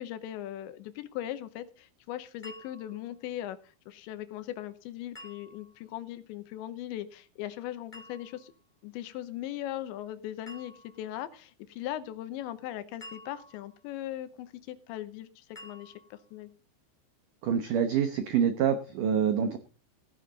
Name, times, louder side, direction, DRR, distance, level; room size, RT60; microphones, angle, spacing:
voice 1, 0.0-8.5 8.8-16.5, left 12 dB, 80° left, 13 dB, 3.0 m, -39 dB
sound 1, 2.4-3.1 5.1-5.9 7.9-8.6 10.5-11.1 13.0-13.9 15.6-16.3, left 1 dB, 15° left, 2.3 m, -50 dB
voice 2, 17.4-19.6, right 8 dB, 85° right, 8 dB, 1.8 m, -26 dB
16.0 x 9.8 x 4.0 m, 0.36 s
omnidirectional pair, 5.3 m